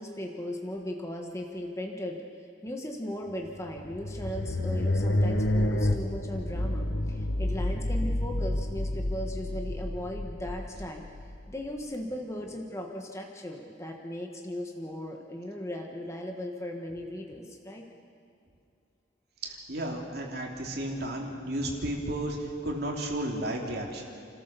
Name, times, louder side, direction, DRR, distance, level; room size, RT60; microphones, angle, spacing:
voice 1, 0.0-2.2 2.6-11.1 11.5-17.8, left 1 dB, 15° left, 2 dB, 1.4 m, -37 dB
sound 1, 3.5-11.8, left 1 dB, 75° left, 1.1 m, -29 dB
voice 2, 19.4-24.0, right 1 dB, 60° right, 0 dB, 3.0 m, -33 dB
29.5 x 13.5 x 6.9 m, 2.5 s
head